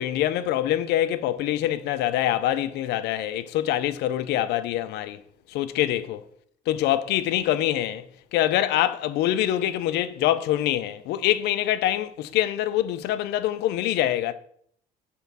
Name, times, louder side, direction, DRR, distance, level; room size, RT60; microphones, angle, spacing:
voice 1, 0.0-5.2 5.5-6.2 6.7-8.0 8.3-14.3, left 12 dB, 85° left, 0.6 m, -25 dB
6.9 x 4.6 x 5.4 m
cardioid pair, 110°, 17 cm